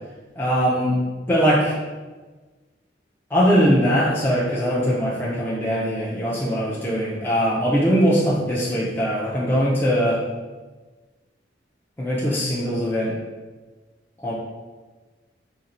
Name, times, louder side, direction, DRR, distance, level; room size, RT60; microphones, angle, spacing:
voice 1, 0.4-1.0 1.3-1.8 3.3-10.2 12.0-13.2 14.2-14.3, equal, 10° left, -6 dB, 0.4 m, -21 dB
2.9 x 2.6 x 4.1 m, 1.3 s
head